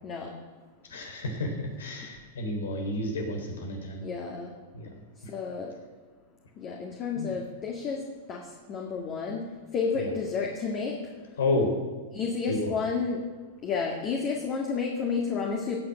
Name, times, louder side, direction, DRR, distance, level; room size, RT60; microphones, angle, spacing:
voice 1, 0.0-0.3 4.0-4.5 5.3-5.7 6.6-8.0 8.3-9.4 9.7-11.0 12.1-13.2 13.6-15.8, left 5 dB, 35° left, 0 dB, 2.0 m, -31 dB
voice 2, 0.9-4.0 4.7-4.9 7.2-7.3 10.0-10.1 11.4-11.7 12.5-12.6, left 2 dB, 85° left, 2 dB, 3.6 m, -30 dB
17.0 x 6.0 x 8.9 m, 1.4 s
hypercardioid pair, 120°, 0 cm